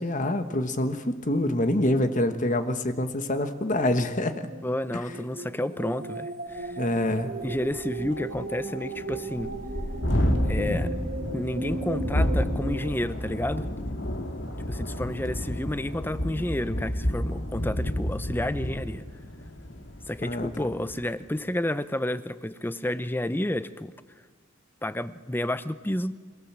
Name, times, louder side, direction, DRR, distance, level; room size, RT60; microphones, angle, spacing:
voice 1, 0.0-4.4 6.8-7.3 20.2-20.5, left 1 dB, 40° left, 9 dB, 1.3 m, -26 dB
sound 1, 4.2-12.9, right 2 dB, 45° right, 1.3 m, -37 dB
voice 2, 4.6-6.8 7.4-9.5 10.5-10.9 11.3-13.7 14.7-19.0 20.1-23.9 24.8-26.1, left 1 dB, 10° left, 14 dB, 0.6 m, -30 dB
Thunderstorm, 6.6-6.7 7.0-7.1 7.4-21.0, equal, 60° left, 2.3 m, -30 dB
27.0 x 17.5 x 7.4 m, 1.5 s
head